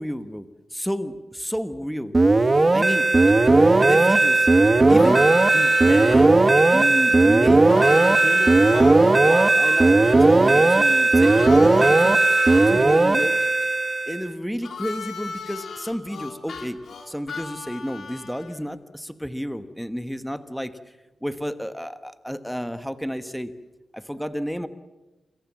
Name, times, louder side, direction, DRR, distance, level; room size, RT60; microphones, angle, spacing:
voice 1, 0.0-2.1 2.7-3.1 3.8-4.5 4.9-6.3 6.7-13.3 14.1-16.8 17.1-20.8 21.2-23.5 23.9-24.7, equal, ahead, 10 dB, 1.3 m, -31 dB
sound 1, 2.1-14.3, right 2 dB, 30° right, 1.2 m, -16 dB
Harmonica, 4.9-6.3 7.7-12.7 14.6-18.6, left 5 dB, 75° left, 3.6 m, -35 dB
28.0 x 22.0 x 7.5 m, 1.1 s
cardioid pair, 80°, 0 cm